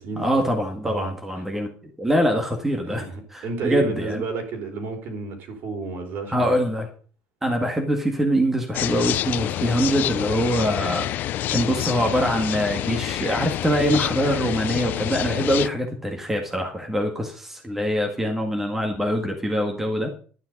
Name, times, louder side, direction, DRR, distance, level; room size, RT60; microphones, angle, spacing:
voice 1, 0.2-1.7 2.0-3.0 3.3-4.2 6.3-6.9 7.4-11.1 11.5-20.1, equal, 5° right, 1.9 m, -24 dB
voice 2, 2.8-6.6, right 4 dB, 50° right, 4.2 m, -31 dB
sound 1, 8.7-15.7, left 13 dB, 45° left, 0.5 m, -27 dB
12.0 x 9.4 x 5.4 m
cardioid pair, 165°, 4 cm